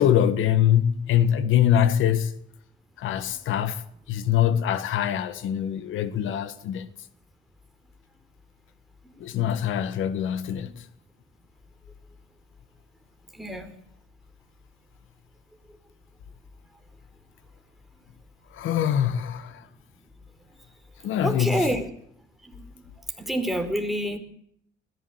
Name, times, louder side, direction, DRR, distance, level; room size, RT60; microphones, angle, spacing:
voice 1, 0.0-2.3 3.0-3.8 4.1-6.9 9.2-10.7 18.5-19.6 21.0-21.7, left 10 dB, 80° left, 1.6 m, -23 dB
voice 2, 13.3-13.7 21.1-21.9 22.4-22.8 23.2-24.2, right 1 dB, ahead, 4.6 m, -28 dB
20.5 x 16.0 x 8.1 m
cardioid pair, 90°, 20 cm